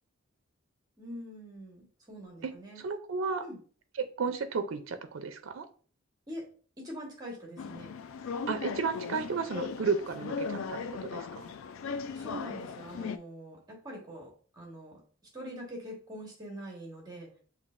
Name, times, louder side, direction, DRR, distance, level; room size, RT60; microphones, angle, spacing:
voice 1, 1.0-2.8 3.4-3.6 6.3-6.5 6.8-7.9 12.1-15.0 15.3-17.3, equal, 20° right, -1 dB, 1.2 m, -44 dB
voice 2, 2.4-3.4 4.0-5.7 8.5-10.8 11.1-11.5, right 5 dB, 70° right, 9 dB, 0.4 m, -33 dB
sound 1, 7.6-13.2, left 5 dB, 75° left, 0.3 m, -38 dB
6.4 x 2.8 x 2.5 m, 0.42 s
head